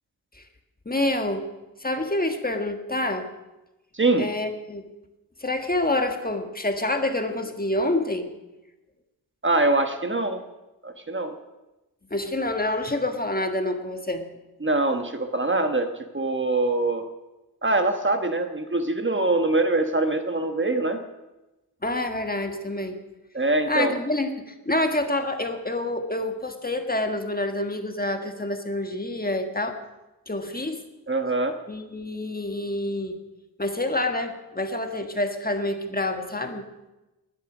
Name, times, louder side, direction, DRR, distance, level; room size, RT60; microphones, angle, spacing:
voice 1, 0.8-1.4 1.8-3.3 4.2-4.8 5.4-8.3 12.1-14.2 21.8-23.0 23.7-29.8 30.3-30.8 31.7-33.2 33.6-36.6, left 1 dB, 25° left, 5 dB, 1.5 m, -27 dB
voice 2, 3.9-4.3 9.4-10.4 10.8-11.4 14.6-15.9 16.1-17.1 17.6-21.0 23.3-24.0 31.1-31.6, right 2 dB, 30° right, 6 dB, 1.3 m, -23 dB
20.0 x 11.5 x 6.1 m, 1.0 s
wide cardioid pair, 110°, 38 cm